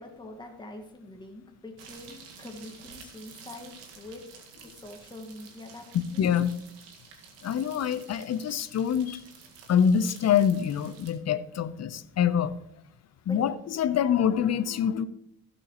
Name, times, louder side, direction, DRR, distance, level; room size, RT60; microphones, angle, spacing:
voice 1, 0.0-4.2 4.6-6.3 13.3-13.4, left 1 dB, 10° left, 2 dB, 1.9 m, -44 dB
sound 1, 1.8-11.1, right 6 dB, 75° right, 2.1 m, -51 dB
voice 2, 5.9-6.5 7.4-9.2 9.7-12.5 13.3-15.0, left 8 dB, 40° left, 15 dB, 0.9 m, -25 dB
16.0 x 7.8 x 3.2 m, 0.73 s
hypercardioid pair, 60°, 39 cm